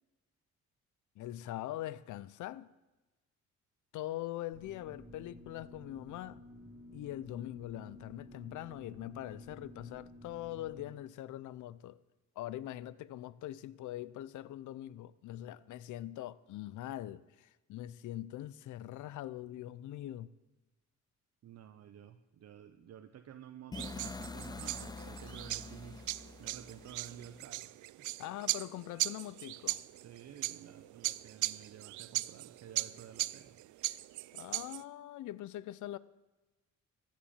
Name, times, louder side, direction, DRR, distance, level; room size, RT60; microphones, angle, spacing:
voice 1, 1.2-2.7 3.9-6.4 6.9-12.0 12.4-20.3 28.2-29.8 34.3-36.0, left 14 dB, 75° left, 0.6 m, -42 dB
sound 1, 4.5-10.9, left 1 dB, 15° right, 4.4 m, -53 dB
voice 2, 21.4-28.1 30.0-33.6, right 9 dB, 55° right, 0.8 m, -52 dB
sound 2, 23.7-27.6, left 4 dB, 15° left, 0.4 m, -46 dB
sound 3, 23.7-34.8, right 17 dB, 75° right, 0.5 m, -39 dB
14.0 x 7.5 x 8.7 m
cardioid pair, 90°, 30 cm